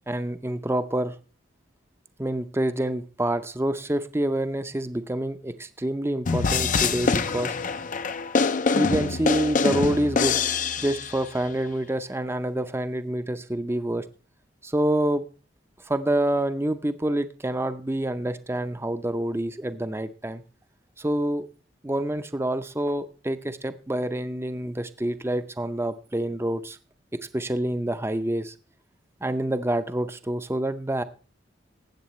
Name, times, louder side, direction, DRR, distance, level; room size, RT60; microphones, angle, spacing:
voice 1, 0.1-1.1 2.2-7.6 8.7-10.4 10.8-14.0 14.6-15.2 15.9-20.4 21.0-21.5 21.8-26.8 27.3-28.5 29.2-31.0, right 1 dB, 15° right, 10 dB, 0.6 m, -27 dB
sound 1, 6.3-11.3, left 5 dB, 40° left, 0.5 m, -25 dB
19.5 x 8.2 x 3.1 m, 0.36 s
head